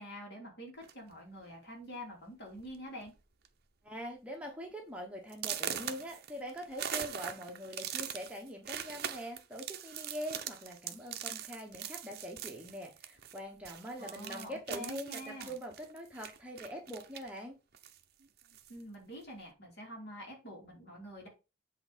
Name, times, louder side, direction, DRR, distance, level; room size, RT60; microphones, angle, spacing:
voice 1, 0.0-3.1 14.0-15.5 18.7-21.3, equal, 50° left, 0 dB, 3.3 m, -46 dB
sound 1, 0.8-1.1 1.9-2.0 2.4-2.7 3.0-3.5 3.9-4.0 4.5-4.6 5.3-13.4 13.6-17.4 17.7-18.8, right 9 dB, 50° right, 0.8 m, -42 dB
voice 2, 3.8-17.6, equal, 5° right, 1 dB, 1.1 m, -43 dB
8.0 x 3.7 x 5.1 m, 0.29 s
head